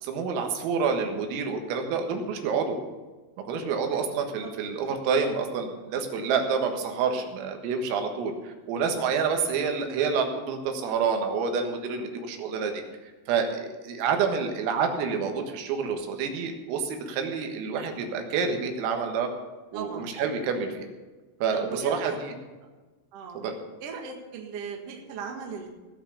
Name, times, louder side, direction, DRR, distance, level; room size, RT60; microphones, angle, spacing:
voice 1, 0.0-2.8 3.5-12.8 13.3-19.3 19.7-20.9 21.4-22.3 23.4-23.6, right 5 dB, 90° right, 4 dB, 4.2 m, -28 dB
voice 2, 3.9-4.5 9.3-9.5 19.7-20.1 21.5-22.2 23.1-23.4 23.8-25.7, right 5 dB, 65° right, 2 dB, 1.5 m, -38 dB
18.0 x 6.0 x 7.1 m, 1.3 s
omnidirectional pair, 5.8 m